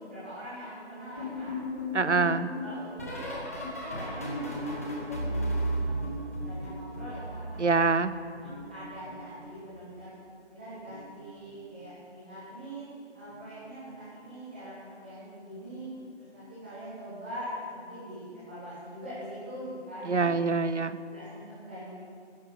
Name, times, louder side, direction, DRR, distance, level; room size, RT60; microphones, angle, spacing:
voice 1, 0.0-1.5 1.9-2.2 2.6-3.4 3.8-5.8 6.4-7.8 8.3-10.1 10.5-12.8 13.1-15.9 16.3-20.3 21.1-21.9, equal, 10° right, -12 dB, 1.2 m, -43 dB
sound 1, 1.2-7.9 8.2-9.8 10.8-11.2 11.4-11.8 13.3-13.6 13.9-14.2 15.7-15.8, equal, 15° left, 1.0 m, -35 dB
voice 2, 1.9-2.5 7.6-8.1 20.1-21.0, right 4 dB, 85° right, 13 dB, 0.8 m, -25 dB
12.0 x 10.0 x 7.3 m, 2.3 s
figure-of-eight pair, 160°, 35 cm